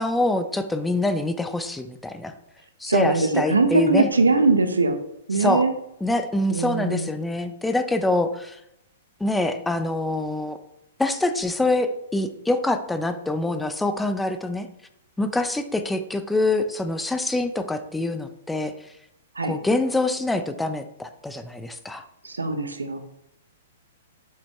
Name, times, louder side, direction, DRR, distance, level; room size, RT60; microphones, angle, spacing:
voice 1, 0.0-2.3 2.8-4.1 5.3-5.7 6.0-8.6 9.2-10.6 11.0-14.7 15.2-18.7 19.4-22.0, left 2 dB, 5° left, 8 dB, 0.5 m, -25 dB
voice 2, 2.8-5.0 5.3-5.7 6.5-7.1 19.4-19.5 22.2-23.0, right 3 dB, 85° right, 7 dB, 0.8 m, -21 dB
5.7 x 5.2 x 3.4 m, 0.81 s
hypercardioid pair, 115°, 0 cm